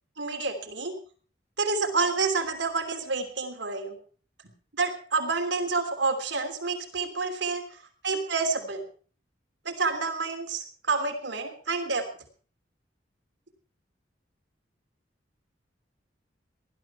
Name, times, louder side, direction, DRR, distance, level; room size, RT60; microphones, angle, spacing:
voice 1, 0.2-0.9 1.6-4.0 4.7-8.8 9.6-12.0, right 4 dB, 75° right, 5 dB, 3.2 m, -29 dB
19.0 x 12.5 x 4.6 m, 0.41 s
head